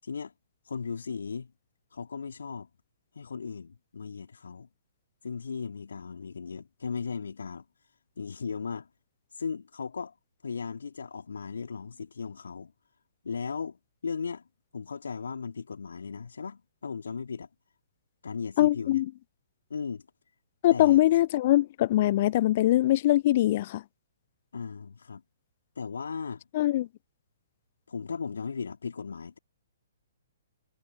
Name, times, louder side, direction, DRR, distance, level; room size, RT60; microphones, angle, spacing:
voice 1, 0.0-0.3 0.6-1.5 1.9-2.7 3.1-4.7 5.2-8.9 9.3-10.2 10.4-12.7 13.2-14.5 14.7-17.5 18.2-19.0 19.7-20.1 20.7-21.0 24.5-25.2 25.8-26.4 27.9-29.4, left 5 dB, 65° left, 2.4 m, -37 dB
voice 2, 18.6-19.1 20.6-23.8 26.5-26.9, left 14 dB, 40° left, 0.4 m, -22 dB
figure-of-eight pair, 125°, 0 cm